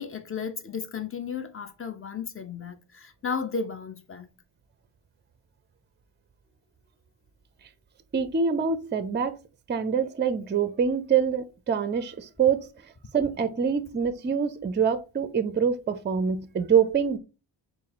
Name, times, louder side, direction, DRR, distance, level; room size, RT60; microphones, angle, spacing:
voice 1, 0.0-4.3, left 5 dB, 25° left, 0.7 m, -34 dB
voice 2, 8.1-9.4 9.7-12.7 13.1-17.2, right 6 dB, 25° right, 0.5 m, -25 dB
4.2 x 2.1 x 3.9 m
cardioid pair, 60°, 49 cm